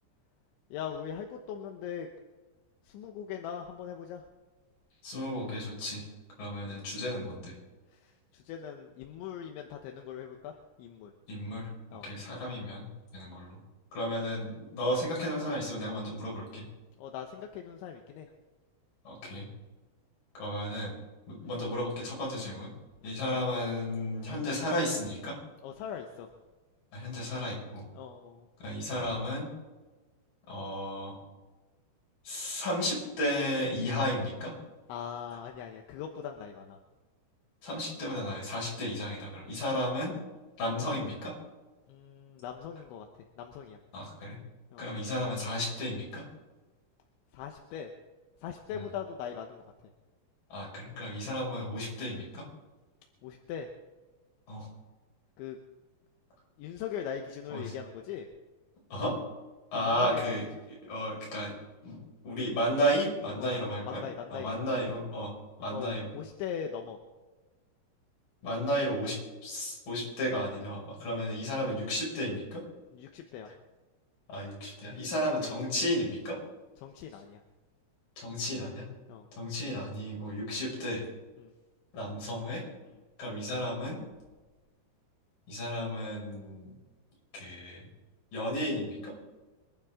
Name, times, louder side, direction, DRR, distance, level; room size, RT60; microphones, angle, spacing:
voice 1, 0.7-2.1 2.8-4.2 6.6-7.0 7.9-11.1 11.9-12.1 14.0-14.1 17.0-18.3 21.4-21.6 23.0-23.1 25.6-26.3 27.9-28.5 34.9-36.8 41.9-43.1 43.4-43.8 44.7-44.9 47.3-47.9 48.4-49.6 51.3-51.4 53.2-53.7 55.4-55.6 56.6-58.3 59.7-60.6 63.4-64.7 65.7-67.0 72.9-73.5 76.8-77.4 79.1-79.3 81.4-81.5 82.8-83.0, left 8 dB, 80° left, 3 dB, 3.4 m, -41 dB
voice 2, 5.0-6.0 6.4-7.5 11.3-12.9 13.1-13.6 13.9-16.6 19.1-19.5 20.3-20.9 21.3-22.7 23.0-25.4 26.9-27.8 28.6-29.5 30.5-31.2 32.2-34.5 37.6-40.1 40.6-41.3 43.9-44.4 44.8-46.2 48.7-48.8 50.5-52.4 54.5-54.7 57.5-57.6 58.9-59.2 59.7-60.5 60.9-61.5 61.8-62.0 62.2-64.0 64.3-65.3 65.6-66.1 68.4-69.2 69.4-72.6 74.3-76.4 78.2-78.9 79.4-81.0 81.9-82.6 83.2-84.0 85.5-86.7 87.3-87.9 88.3-89.1, equal, 45° left, -3 dB, 7.6 m, -33 dB
25.5 x 12.0 x 3.8 m, 1.2 s
omnidirectional pair, 5.4 m